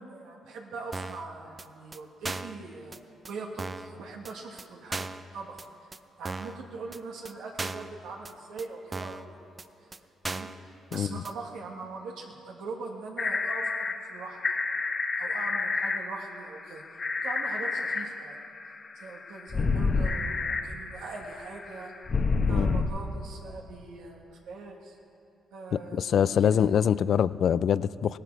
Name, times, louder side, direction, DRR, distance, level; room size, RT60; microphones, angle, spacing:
voice 1, 0.0-3.0 3.3-5.1 5.3-5.7 6.2-9.4 10.3-14.4 15.2-16.8 17.2-18.4 18.9-21.9 22.5-25.0 25.5-26.7, right 3 dB, 85° right, 0 dB, 1.6 m, -41 dB
sound 1, 0.9-1.3 1.6-1.7 1.9-2.0 2.3-2.6 2.9-3.0 3.3-3.4 3.6-3.9 4.3-4.4 4.6-4.7 4.9-5.2 5.6-5.7 5.9-6.0 6.3-6.6 6.9-7.0 7.3-7.4 7.6-7.9 8.3-8.4 8.6-8.7 8.9-9.3 9.6-9.7 9.9-10.0 10.2-10.6 10.9-11.0 11.3-11.4, right 3 dB, 25° right, 0.5 m, -36 dB
voice 2, 10.9-11.2 22.5-22.8 25.9-28.2, left 8 dB, 65° left, 17 dB, 0.3 m, -24 dB
sound 2, 13.2-22.8, left 4 dB, 35° left, 1.0 m, -29 dB
17.5 x 12.5 x 4.6 m, 2.8 s
cardioid pair, 90°, 0 cm